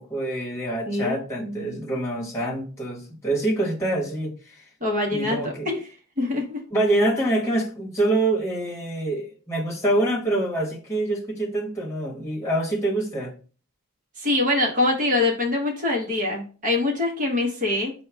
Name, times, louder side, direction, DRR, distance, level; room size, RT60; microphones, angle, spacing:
voice 1, 0.0-4.6 5.1-5.7 6.7-13.3, right 1 dB, 10° left, -4 dB, 1.1 m, -25 dB
voice 2, 0.9-1.8 4.8-5.8 6.2-6.6 14.2-17.9, left 2 dB, 35° right, 0 dB, 0.9 m, -24 dB
4.6 x 2.2 x 4.5 m, 0.38 s
head